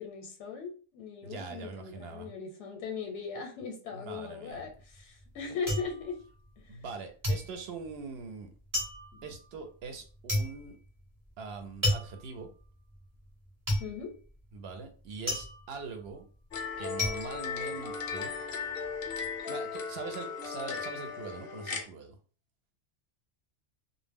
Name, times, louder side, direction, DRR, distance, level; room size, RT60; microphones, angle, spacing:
voice 1, 0.0-6.2 9.1-9.2 13.8-14.1, left 5 dB, 85° left, 2 dB, 0.9 m, -39 dB
voice 2, 1.2-2.3 3.9-4.7 6.7-8.5 9.2-10.8 11.4-12.5 14.5-16.3 16.8-18.3 19.5-22.2, right 4 dB, 65° right, 5 dB, 0.7 m, -42 dB
sound 1, 4.5-6.9 7.2-18.4 18.7-19.3, left 1 dB, 20° right, 0.7 m, -34 dB
sound 2, 16.5-21.8, left 5 dB, 60° left, 0.6 m, -37 dB
2.1 x 2.0 x 3.4 m, 0.39 s
omnidirectional pair, 1.2 m